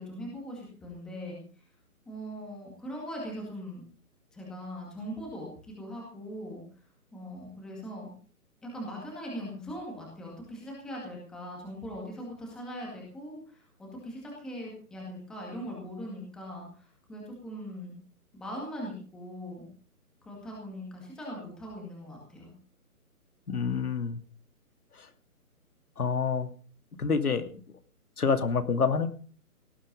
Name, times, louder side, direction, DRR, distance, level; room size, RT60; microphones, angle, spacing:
voice 1, 0.0-1.4 2.1-3.8 4.3-6.6 7.1-8.2 8.6-17.9 18.3-19.7 20.2-22.5, equal, ahead, -3 dB, 2.1 m, -40 dB
voice 2, 23.5-24.2 25.0-25.1 26.0-26.5 27.0-27.6 28.2-29.1, left 5 dB, 75° left, 9 dB, 2.7 m, -27 dB
18.5 x 12.0 x 5.3 m, 0.40 s
hypercardioid pair, 175°, 45 cm